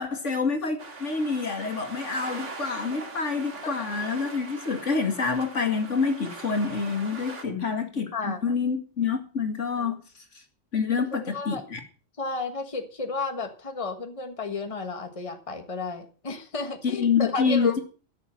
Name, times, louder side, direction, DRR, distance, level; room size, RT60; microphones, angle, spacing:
voice 1, 0.0-10.0 10.3-10.4 10.7-11.8 16.8-17.8, left 5 dB, 80° left, 4 dB, 2.4 m, -27 dB
sound 1, 0.8-7.4, right 3 dB, 75° right, 2.3 m, -41 dB
voice 2, 7.9-8.5 9.8-10.0 11.1-11.6 12.2-17.8, left 4 dB, 30° left, 6 dB, 1.5 m, -32 dB
13.0 x 6.8 x 7.5 m, 0.39 s
omnidirectional pair, 1.2 m